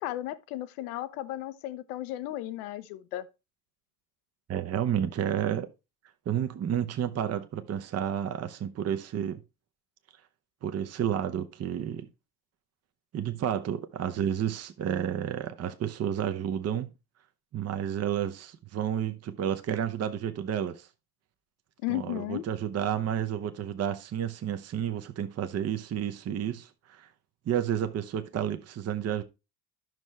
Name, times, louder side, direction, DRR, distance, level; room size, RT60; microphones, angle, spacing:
voice 1, 0.0-3.3 21.8-22.5, left 15 dB, 60° left, 0.8 m, -34 dB
voice 2, 4.5-5.7 6.3-9.4 10.6-12.1 13.1-16.9 17.5-20.9 21.9-27.1 27.5-29.2, right 9 dB, 30° right, 0.8 m, -31 dB
10.5 x 6.3 x 3.2 m
figure-of-eight pair, 55°, 49 cm